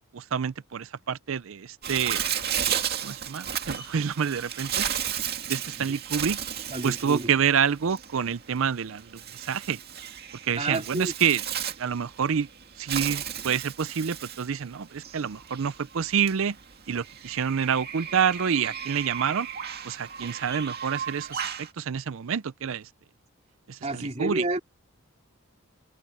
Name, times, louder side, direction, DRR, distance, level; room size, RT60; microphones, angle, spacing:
voice 1, 0.0-2.2 3.0-4.9 5.5-6.4 6.8-9.8 10.4-11.4 11.8-12.5 12.8-16.6 16.9-19.5 19.8-22.9 23.7-24.4, right 7 dB, 65° right, 0.5 m, -28 dB
Bird, 1.8-21.7, right 9 dB, 45° right, 2.2 m, -34 dB
voice 2, 6.7-7.3 10.6-11.1 23.8-24.6, right 2 dB, 30° right, 2.7 m, -30 dB
head